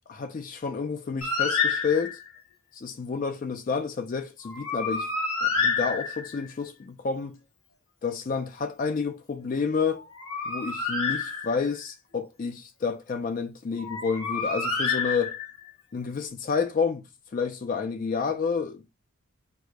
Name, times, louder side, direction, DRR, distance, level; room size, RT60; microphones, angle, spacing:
voice 1, 0.1-2.2 2.7-5.1 5.4-7.4 8.0-10.0 10.5-15.4 15.9-17.0 17.3-18.9, left 5 dB, 40° left, 0.3 m, -29 dB
Bird, 1.2-2.4 4.4-6.5 9.9-11.8 13.8-15.7, left 4 dB, 85° left, 1.2 m, -29 dB
4.7 x 2.0 x 4.7 m
head